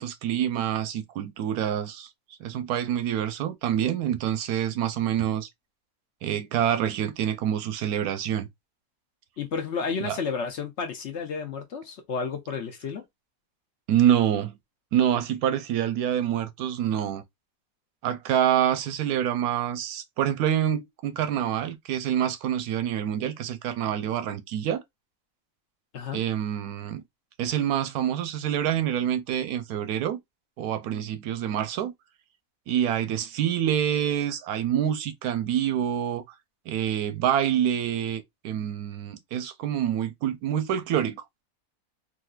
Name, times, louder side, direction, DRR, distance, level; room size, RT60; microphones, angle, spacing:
voice 1, 0.0-2.1 2.4-5.5 6.2-8.5 10.0-10.2 13.9-14.6 14.9-17.2 18.0-24.8 26.1-27.0 27.4-30.2 30.6-31.9 32.7-36.2 36.7-41.4, right 10 dB, 90° right, 1.1 m, -26 dB
voice 2, 9.4-13.0 25.9-26.2, left 5 dB, 60° left, 0.9 m, -31 dB
3.8 x 2.5 x 2.3 m
omnidirectional pair, 1.5 m